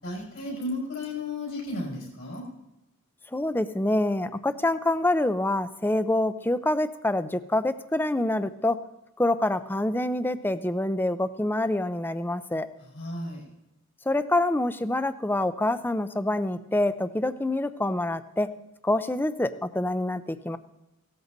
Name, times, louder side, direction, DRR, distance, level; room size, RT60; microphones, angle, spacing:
voice 1, 0.0-2.4 12.8-13.4, left 2 dB, 60° left, -2 dB, 5.5 m, -34 dB
voice 2, 3.3-8.8 9.2-12.7 14.1-18.5 18.8-20.6, left 1 dB, 10° left, 13 dB, 0.5 m, -26 dB
17.0 x 13.5 x 4.0 m, 0.94 s
head